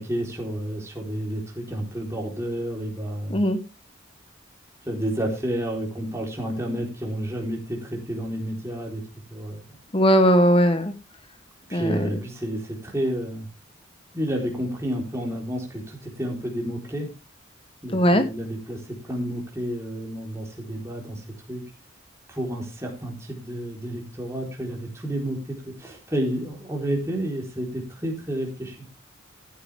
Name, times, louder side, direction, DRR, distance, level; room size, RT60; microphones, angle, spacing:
voice 1, 0.0-3.4 4.9-9.0 9.3-9.6 11.7-13.5 14.1-17.1 17.8-21.6 22.3-28.8, right 1 dB, 15° right, 0 dB, 3.9 m, -30 dB
voice 2, 9.9-10.9 11.7-12.2 17.9-18.3, equal, 25° left, 10 dB, 1.1 m, -19 dB
14.5 x 9.1 x 3.5 m, 0.27 s
head